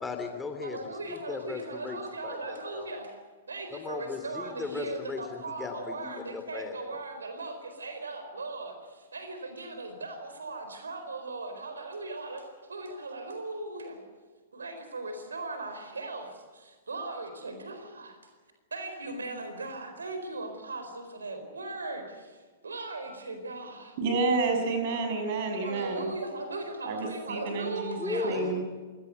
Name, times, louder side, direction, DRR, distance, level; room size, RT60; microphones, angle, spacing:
voice 1, 0.0-0.8 1.1-2.9 3.7-7.0 28.0-28.6, left 4 dB, 10° left, 5 dB, 2.9 m, -37 dB
voice 2, 0.6-3.1 3.5-14.0 14.5-18.2 18.7-24.0 24.8-25.0 25.6-28.5, right 2 dB, 70° right, 8 dB, 4.4 m, -38 dB
voice 3, 24.0-26.1 26.9-28.6, right 3 dB, 45° right, 5 dB, 6.5 m, -29 dB
27.0 x 17.0 x 9.4 m, 1.5 s
figure-of-eight pair, 105°, 0 cm